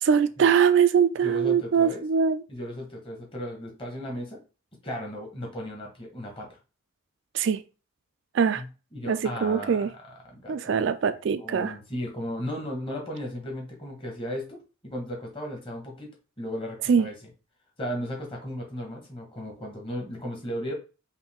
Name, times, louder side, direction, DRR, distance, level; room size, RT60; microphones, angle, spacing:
voice 1, 0.0-2.4 7.3-7.6 8.3-8.6 9.1-9.9 10.5-11.8 16.9-17.1, right 7 dB, 55° right, 0.3 m, -22 dB
voice 2, 1.2-2.0 2.5-4.4 4.8-6.6 8.5-9.9 10.2-10.9 11.3-14.6 14.8-16.1 16.4-17.1 17.8-20.7, equal, 25° left, 1.4 m, -35 dB
5.3 x 2.7 x 3.5 m
head